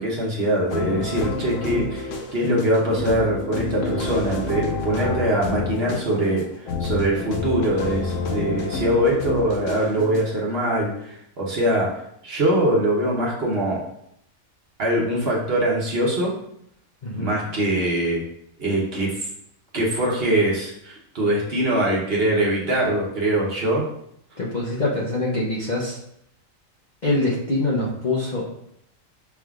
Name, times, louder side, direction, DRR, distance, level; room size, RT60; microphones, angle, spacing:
voice 1, 0.0-11.9 12.2-13.8 14.8-16.3 17.1-18.2 18.6-19.3 19.7-23.8, right 1 dB, 50° right, -4 dB, 1.1 m, -23 dB
sound 1, 0.7-10.2, left 3 dB, 70° left, 1.1 m, -29 dB
voice 2, 24.4-26.0 27.0-28.4, left 2 dB, 40° left, -5 dB, 0.7 m, -24 dB
6.2 x 3.5 x 2.4 m, 0.73 s
omnidirectional pair, 1.4 m